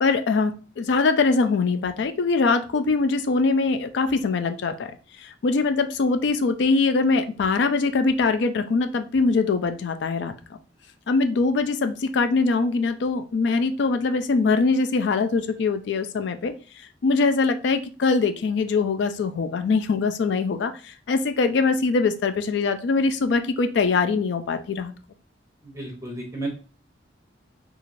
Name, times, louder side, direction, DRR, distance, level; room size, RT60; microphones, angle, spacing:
voice 1, 0.0-4.9 5.2-10.3 11.1-16.5 17.0-24.9, left 4 dB, 70° left, 8 dB, 0.4 m, -22 dB
voice 2, 25.6-26.5, right 2 dB, 15° right, -2 dB, 0.7 m, -33 dB
3.1 x 2.4 x 2.5 m, 0.35 s
head